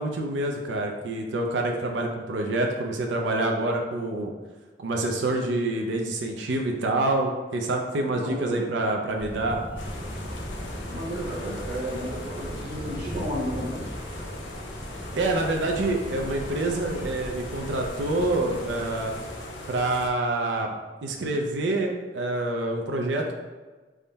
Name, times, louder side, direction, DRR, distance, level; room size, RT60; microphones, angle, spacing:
voice 1, 0.0-4.3 4.8-9.6 15.1-19.1 19.7-20.7 21.0-23.3, right 2 dB, 85° right, 2 dB, 0.4 m, -27 dB
voice 2, 8.0-8.6 10.9-13.9, equal, 55° right, -8 dB, 1.1 m, -33 dB
Thunder, 9.2-19.2, equal, 10° right, 0.4 m, -38 dB
sound 1, 9.8-20.1, left 1 dB, 85° left, 0.6 m, -39 dB
3.5 x 2.2 x 3.9 m, 1.3 s
head